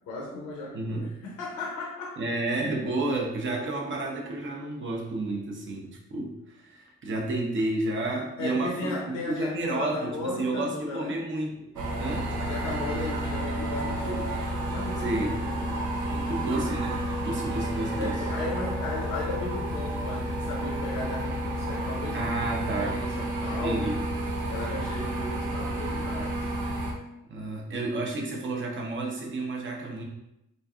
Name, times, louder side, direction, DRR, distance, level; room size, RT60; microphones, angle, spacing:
voice 1, 0.1-2.2 8.4-11.2 12.4-14.4 14.7-15.9 17.9-22.2 22.7-24.0 24.5-26.5, left 2 dB, 85° left, -3 dB, 0.7 m, -36 dB
voice 2, 0.7-1.1 2.2-12.3 15.0-15.4 16.1-18.2 22.1-23.0 23.5-24.0 27.3-30.0, right 2 dB, 40° right, -1 dB, 0.8 m, -31 dB
sound 1, 11.8-26.9, right 1 dB, 80° right, 0.7 m, -31 dB
3.1 x 2.5 x 2.4 m, 0.84 s
cardioid pair, 90°, 30 cm